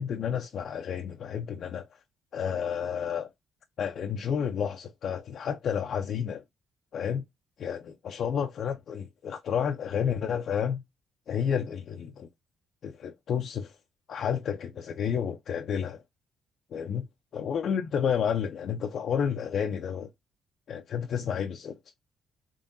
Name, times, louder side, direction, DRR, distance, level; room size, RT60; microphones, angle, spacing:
voice 1, 0.0-2.0 2.3-3.3 3.8-6.4 6.9-7.2 7.6-10.8 11.3-12.3 12.8-13.8 14.1-16.0 16.7-17.0 17.3-20.1 20.7-21.8, left 7 dB, 65° left, 0.5 m, -30 dB
3.6 x 3.6 x 2.6 m
cardioid pair, 90°, 0 cm